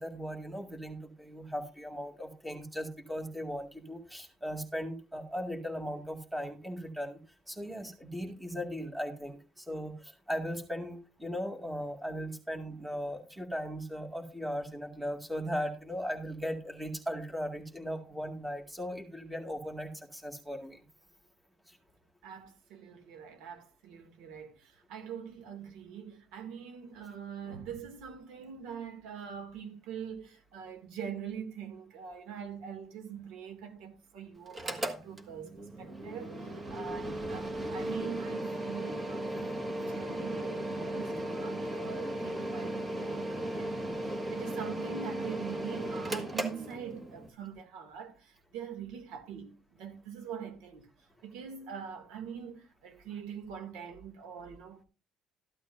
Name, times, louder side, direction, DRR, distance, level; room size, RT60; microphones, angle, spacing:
voice 1, 0.0-7.2 7.5-20.8 21.7-21.8, equal, 5° right, 2.0 m, -38 dB
voice 2, 22.2-39.4 39.8-50.9 51.2-54.8, right 7 dB, 90° right, 2.4 m, -43 dB
Mechanical fan, 34.5-47.3, right 1 dB, 20° right, 1.6 m, -36 dB
14.0 x 12.0 x 2.6 m
cardioid pair, 155°, 0 cm